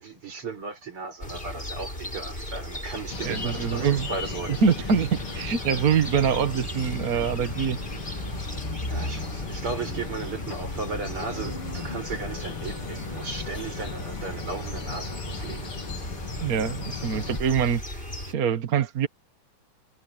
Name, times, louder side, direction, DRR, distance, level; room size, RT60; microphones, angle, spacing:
voice 1, 0.0-4.6 8.9-15.7, right 4 dB, 80° right, 6.2 m, -36 dB
sound 1, 1.2-18.3, left 1 dB, 25° left, 8.4 m, -36 dB
sound 2, 3.1-17.4, left 5 dB, 80° left, 4.1 m, -37 dB
voice 2, 3.2-4.1 4.6-7.8 16.4-17.8 18.3-19.1, right 7 dB, 45° right, 1.6 m, -24 dB
omnidirectional pair, 2.4 m